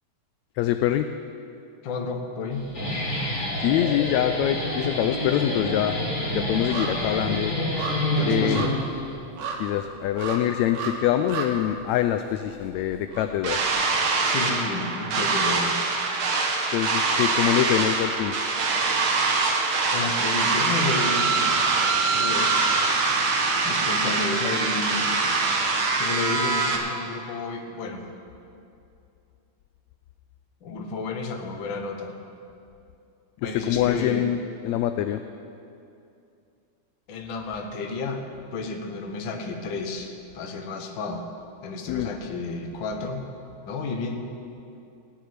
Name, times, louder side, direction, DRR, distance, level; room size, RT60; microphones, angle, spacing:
voice 1, 0.6-1.1 3.6-6.0 6.3-7.5 8.3-8.7 9.6-13.6 16.7-18.4 33.4-35.2 41.9-42.1, left 11 dB, 80° left, 9 dB, 1.6 m, -24 dB
voice 2, 1.8-2.7 8.1-8.8 14.2-15.8 19.9-21.5 22.1-23.0 23.6-25.1 25.9-28.1 30.6-32.1 33.4-34.3 37.1-38.2 38.5-41.2 41.6-43.3 43.6-44.2, left 3 dB, 55° left, 3 dB, 1.4 m, -31 dB
Guitar, 2.5-9.1, left 1 dB, 25° left, 3.7 m, -28 dB
sound 1, 3.8-4.5 4.8-14.8 15.1-15.2, right 4 dB, 85° right, 2.9 m, -37 dB
sound 2, 13.4-26.8, right 4 dB, 50° right, 1.8 m, -23 dB
16.5 x 6.8 x 9.7 m, 2.6 s
omnidirectional pair, 3.5 m